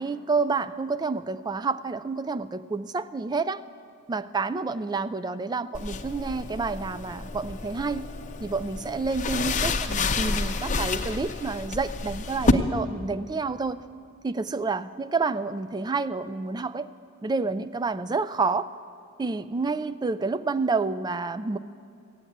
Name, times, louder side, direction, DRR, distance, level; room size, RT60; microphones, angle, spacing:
voice 1, 0.0-3.6 4.1-8.1 8.4-13.8 14.2-16.9 17.2-18.7 19.2-21.6, right 4 dB, 20° right, 14 dB, 0.3 m, -29 dB
sound 1, 5.7-12.5, left 3 dB, 35° left, 0.6 m, -29 dB
15.0 x 8.6 x 9.4 m, 2.5 s
head